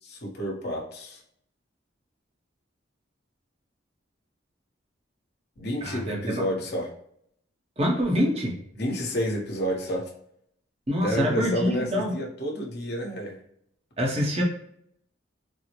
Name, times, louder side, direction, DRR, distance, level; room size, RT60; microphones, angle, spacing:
voice 1, 0.0-1.2 5.6-6.9 8.7-10.1 10.9-13.4, equal, 55° left, -1 dB, 1.1 m, -30 dB
voice 2, 5.8-6.5 7.8-8.6 10.9-12.1 14.0-14.4, equal, 30° right, -1 dB, 0.7 m, -25 dB
4.1 x 2.0 x 2.9 m, 0.69 s
head